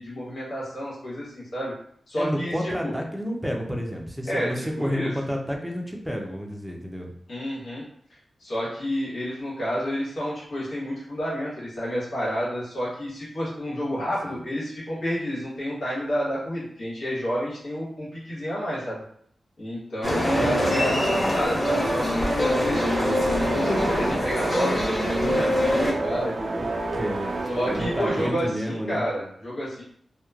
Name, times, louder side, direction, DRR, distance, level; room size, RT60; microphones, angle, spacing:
voice 1, 0.0-1.7 2.1-2.9 4.2-5.1 7.3-7.8 8.4-19.0 19.6-23.2 23.5-26.7 27.5-29.8, equal, 85° left, -8 dB, 1.3 m, -30 dB
voice 2, 2.2-7.1 13.9-14.4 20.3-20.9 26.9-29.0, equal, 5° right, 1 dB, 0.5 m, -30 dB
sound 1, 20.0-25.9, equal, 20° left, 0.8 m, -24 dB
sound 2, 21.8-28.3, right 2 dB, 70° right, 0.3 m, -31 dB
2.9 x 2.1 x 2.3 m, 0.64 s
wide cardioid pair, 95°, 0 cm